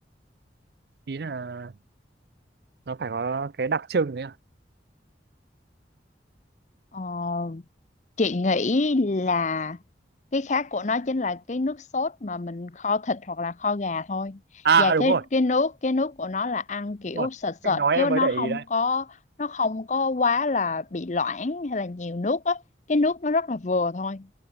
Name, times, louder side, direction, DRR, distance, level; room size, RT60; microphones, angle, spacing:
voice 1, 1.1-1.7 2.9-4.3 14.6-15.2 17.1-17.3 17.6-18.6, right 5 dB, 60° right, 0.5 m, -25 dB
voice 2, 6.9-7.6 8.2-9.8 10.3-14.4 14.8-22.6 22.9-24.3, left 3 dB, 40° left, 0.7 m, -26 dB
head